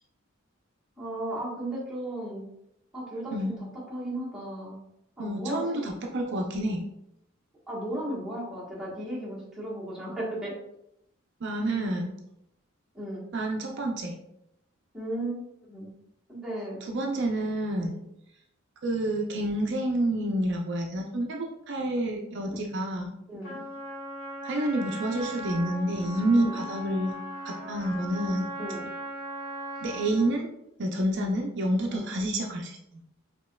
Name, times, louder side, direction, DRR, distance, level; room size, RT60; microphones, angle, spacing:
voice 1, 1.0-2.4 2.9-4.8 5.2-5.9 7.7-10.5 12.9-13.3 14.9-15.4 15.7-15.9 16.3-16.8 22.5-22.6 23.3-23.6 26.4-26.6 28.6-28.9 31.9-32.1, right 1 dB, ahead, -7 dB, 1.2 m, -35 dB
voice 2, 5.2-6.8 11.4-12.2 13.3-14.1 16.9-18.0 18.8-23.1 24.4-27.1 27.5-28.5 29.8-30.5 30.8-32.8, right 1 dB, 60° right, 1 dB, 0.5 m, -28 dB
Trumpet, 23.4-30.4, right 1 dB, 70° left, 1.5 m, -38 dB
5.2 x 2.9 x 2.2 m, 0.79 s
head